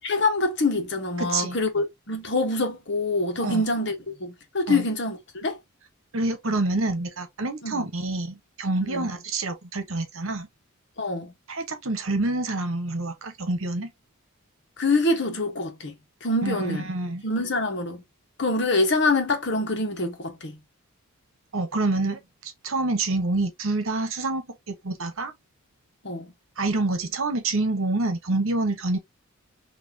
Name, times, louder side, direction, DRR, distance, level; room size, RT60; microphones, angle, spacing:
voice 1, 0.0-5.6 7.6-7.9 8.8-9.1 11.0-11.3 14.8-16.0 16.2-16.9 17.2-18.0 18.4-20.6 26.0-26.3, left 2 dB, 55° left, 1.3 m, -25 dB
voice 2, 1.2-1.6 3.4-3.6 4.7-4.8 6.1-10.5 11.5-13.9 16.4-17.2 21.5-25.3 26.6-29.0, right 2 dB, 70° right, 1.2 m, -27 dB
5.9 x 2.9 x 2.8 m
head